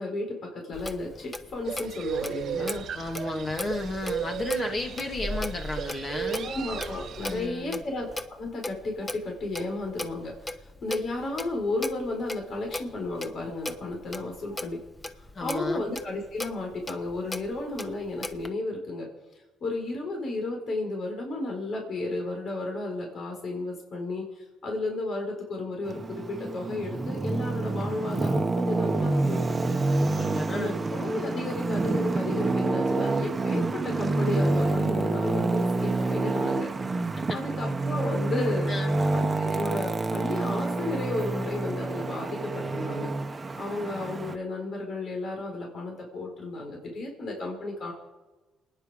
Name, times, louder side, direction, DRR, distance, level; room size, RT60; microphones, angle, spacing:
voice 1, 0.0-2.9 6.4-8.1 8.4-14.8 15.2-19.1 19.6-29.8 30.5-36.7 37.3-38.7 39.1-43.1 43.6-47.9, left 2 dB, 60° left, 1 dB, 4.6 m, -33 dB
Clock, 0.7-18.5, left 2 dB, 20° left, 1.1 m, -39 dB
sound 1, 1.7-7.5, right 8 dB, 65° right, 0.8 m, -35 dB
voice 2, 2.9-6.5 7.3-7.8 15.3-15.8 30.0-30.8 37.2-37.4 38.7-39.0, left 2 dB, 40° left, 3 dB, 2.8 m, -33 dB
Traffic noise roadway noise, 25.9-44.4, right 3 dB, 25° right, 1.0 m, -28 dB
28.0 x 10.0 x 5.1 m, 1.2 s
cardioid pair, 90°, 0 cm